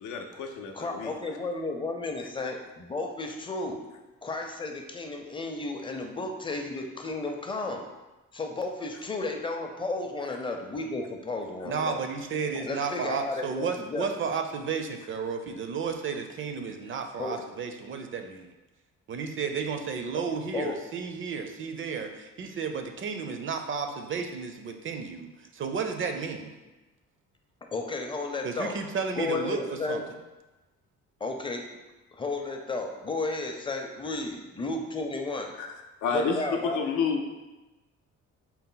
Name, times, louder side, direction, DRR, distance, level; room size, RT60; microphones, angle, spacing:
voice 1, 0.0-1.1 35.6-35.7 36.0-36.4 36.7-37.2, left 5 dB, 80° left, 3 dB, 0.6 m, -29 dB
voice 2, 0.7-3.8 4.2-7.8 8.3-12.0 12.5-14.1 17.2-17.4 20.5-20.8 27.7-28.8 29.1-30.0 31.2-31.6 32.1-35.5 36.1-36.8, left 3 dB, 15° left, 3 dB, 0.5 m, -33 dB
voice 3, 11.6-18.5 19.1-26.5 28.4-29.6 29.9-30.0, right 5 dB, 45° right, 6 dB, 0.4 m, -33 dB
4.2 x 2.1 x 3.8 m, 1.1 s
cardioid pair, 90°, 30 cm